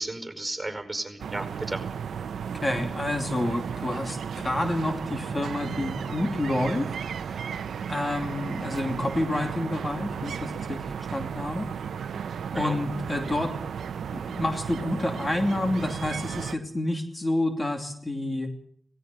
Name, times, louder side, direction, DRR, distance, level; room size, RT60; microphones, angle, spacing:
voice 1, 0.0-1.8 12.5-12.8, right 2 dB, 20° right, 9 dB, 5.0 m, -33 dB
sound 1, 1.2-16.5, right 7 dB, 90° right, 0.8 m, -34 dB
voice 2, 2.6-6.9 7.2-7.6 7.9-12.0 12.5-13.5 14.1-18.5, left 1 dB, 30° left, 5 dB, 2.8 m, -29 dB
18.0 x 16.5 x 9.3 m, 0.62 s
cardioid pair, 55°, 0 cm